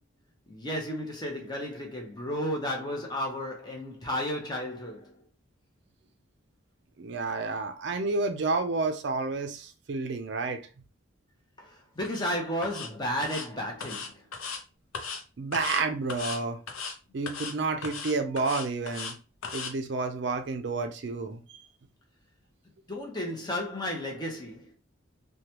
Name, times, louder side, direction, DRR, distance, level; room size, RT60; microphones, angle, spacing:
voice 1, 0.5-5.2 11.6-14.3 22.9-24.7, left 1 dB, 20° left, 0.7 m, -33 dB
voice 2, 7.0-10.6 15.4-16.6 17.1-19.1 19.5-21.4, right 3 dB, 55° right, 0.4 m, -30 dB
sound 1, 12.0-12.3 12.6-12.9 13.2-13.5 13.8-14.6 14.9-15.2 15.5-15.8 16.1-16.4 16.7-16.9 17.3-17.5 17.8-19.1 19.4-19.7, left 5 dB, 90° left, 0.6 m, -37 dB
3.1 x 2.2 x 2.8 m
head